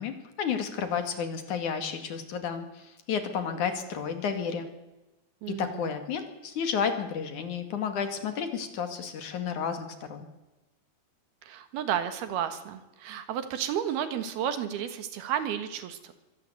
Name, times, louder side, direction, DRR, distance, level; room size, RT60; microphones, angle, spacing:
voice 1, 0.0-4.7 5.5-10.3, left 7 dB, 55° left, 8 dB, 3.3 m, -32 dB
voice 2, 5.4-5.9 11.4-16.1, right 9 dB, 80° right, 10 dB, 3.6 m, -32 dB
24.5 x 16.5 x 8.0 m, 1.1 s
omnidirectional pair, 4.5 m